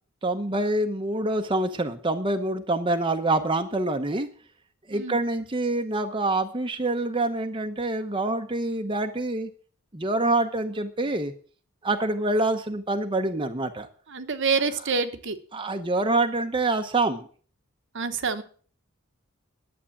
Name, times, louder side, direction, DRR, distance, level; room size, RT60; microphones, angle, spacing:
voice 1, 0.2-4.3 4.9-9.5 9.9-11.3 11.8-13.9 15.5-17.3, right 2 dB, 25° right, 6 dB, 0.8 m, -26 dB
voice 2, 14.1-15.4 17.9-18.4, right 5 dB, 55° right, 10 dB, 1.1 m, -27 dB
11.5 x 8.1 x 7.2 m, 0.44 s
head